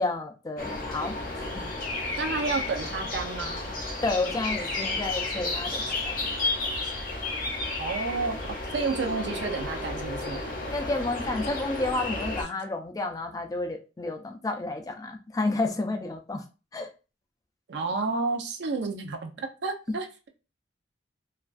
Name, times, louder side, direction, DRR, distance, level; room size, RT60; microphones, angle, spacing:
voice 1, 0.0-1.7 4.0-6.3 10.7-16.4 16.7-16.9, left 2 dB, 20° left, 4 dB, 0.3 m, -31 dB
sound 1, 0.6-12.4, left 2 dB, 50° left, 0.7 m, -32 dB
voice 2, 2.2-3.7 7.8-8.4 8.7-10.4 17.7-20.3, right 4 dB, 70° right, 5 dB, 0.5 m, -30 dB
2.3 x 2.2 x 2.4 m, 0.32 s
head